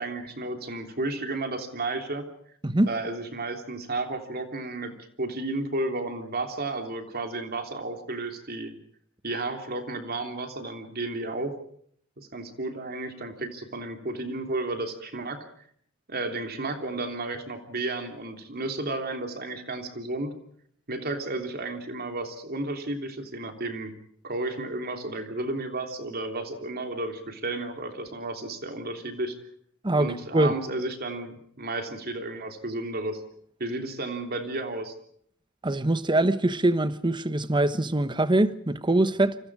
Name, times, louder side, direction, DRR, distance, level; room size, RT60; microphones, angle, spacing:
voice 1, 0.0-2.3 2.9-8.8 9.2-11.5 12.3-15.4 16.1-20.3 20.9-23.9 24.2-29.4 29.9-33.2 33.6-34.9, right 2 dB, 50° right, 3.2 m, -32 dB
voice 2, 29.8-30.5 35.6-39.4, right 1 dB, 25° right, 1.1 m, -23 dB
29.5 x 25.5 x 4.9 m
head